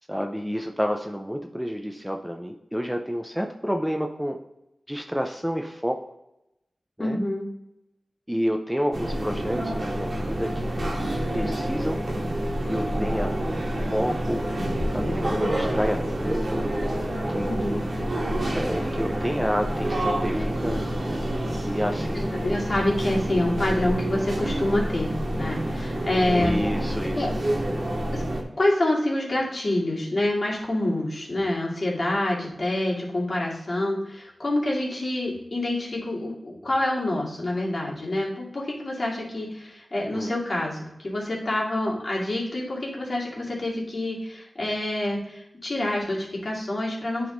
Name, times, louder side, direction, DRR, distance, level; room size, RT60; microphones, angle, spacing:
voice 1, 0.1-4.4 4.9-6.1 7.0-7.2 8.3-10.7 11.3-12.0 12.6-13.3 13.9-14.4 14.9-16.6 17.3-17.8 18.5-20.8 21.6-22.3 26.4-27.3 40.1-40.3, equal, 5° right, 4 dB, 0.5 m, -29 dB
voice 2, 7.0-7.4 17.4-17.8 22.1-26.6 27.1-27.3 28.1-28.2 28.6-47.3, left 1 dB, 45° left, -4 dB, 2.3 m, -27 dB
sound 1, 8.9-28.4, right 1 dB, 55° right, 1.5 m, -28 dB
9.7 x 3.6 x 3.8 m, 0.87 s
wide cardioid pair, 75°, 0 cm